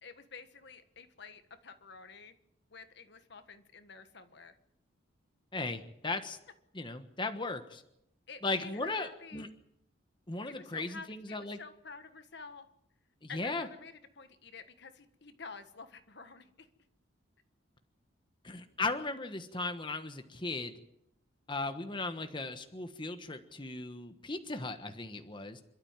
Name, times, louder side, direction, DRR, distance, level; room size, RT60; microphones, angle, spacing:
voice 1, 0.0-2.3 2.7-4.6 8.3-9.5 10.5-12.7 13.3-16.7, left 5 dB, 60° left, 9 dB, 1.5 m, -50 dB
voice 2, 5.5-6.4 6.7-7.8 8.4-9.5 10.3-11.6 13.2-13.7 18.4-20.7 21.5-25.6, left 3 dB, 25° left, 7 dB, 1.3 m, -37 dB
27.0 x 13.0 x 9.0 m, 0.81 s
head